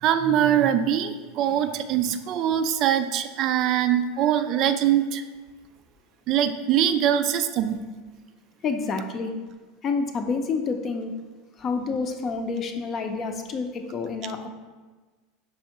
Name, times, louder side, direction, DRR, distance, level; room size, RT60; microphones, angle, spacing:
voice 1, 0.0-5.2 6.3-7.8, right 10 dB, 50° right, 9 dB, 0.3 m, -23 dB
voice 2, 8.6-9.3 9.8-11.1 11.6-14.5, left 4 dB, 40° left, 6 dB, 0.5 m, -28 dB
5.4 x 3.4 x 2.9 m, 1.3 s
hypercardioid pair, 95°, 0 cm